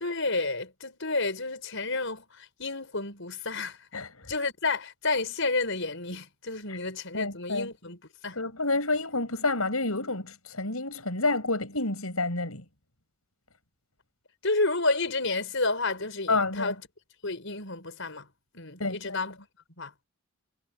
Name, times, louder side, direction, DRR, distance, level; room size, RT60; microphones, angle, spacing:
voice 1, 0.0-4.0 4.3-8.0 8.2-8.4 14.4-16.8 17.2-18.3 18.5-19.4 19.8-19.9, left 3 dB, 60° left, 7.1 m, -30 dB
voice 2, 3.9-4.3 6.7-6.8 7.1-7.7 8.4-12.6 16.3-16.7 18.8-19.2, left 2 dB, 75° left, 7.0 m, -29 dB
head